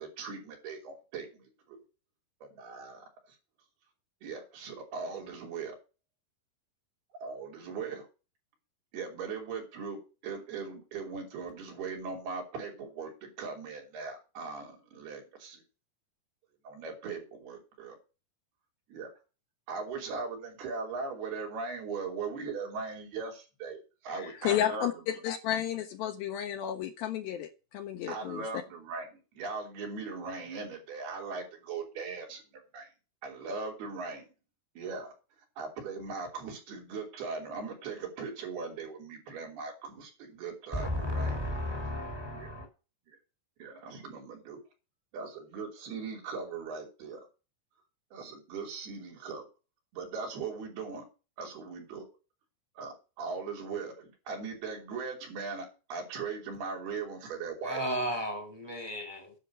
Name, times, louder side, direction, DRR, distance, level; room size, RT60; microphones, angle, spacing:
voice 1, 0.0-1.8 2.4-3.4 4.2-5.8 7.2-8.1 8.9-15.6 16.7-18.0 18.9-19.1 19.7-24.9 28.1-32.4 32.7-32.9 33.2-34.3 34.8-35.1 35.6-41.4 42.3-42.5 43.1-43.2 43.6-44.6 45.1-47.2 48.1-49.5 49.9-51.1 51.4-52.1 52.8-57.8, right 4 dB, 85° right, 2 dB, 5.1 m, -39 dB
voice 2, 24.1-28.4, left 11 dB, 75° left, 5 dB, 2.5 m, -32 dB
voice 3, 40.7-42.7 57.6-59.3, equal, 10° right, 4 dB, 1.3 m, -34 dB
10.0 x 6.6 x 6.3 m, 0.32 s
omnidirectional pair, 4.4 m